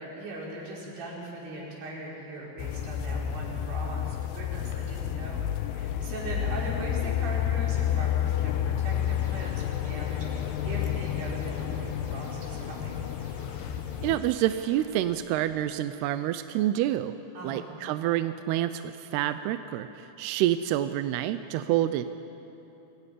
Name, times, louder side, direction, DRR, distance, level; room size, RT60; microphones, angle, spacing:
voice 1, 0.0-13.0 17.3-17.7, right 1 dB, 65° right, -4 dB, 6.7 m, -40 dB
sound 1, 2.6-14.2, left 10 dB, 80° left, 2.7 m, -30 dB
sound 2, 8.7-15.5, right 1 dB, 20° right, 6.1 m, -51 dB
voice 2, 14.0-17.1 17.4-22.1, right 13 dB, 80° right, 10 dB, 2.5 m, -28 dB
25.0 x 17.0 x 10.0 m, 2.9 s
omnidirectional pair, 5.1 m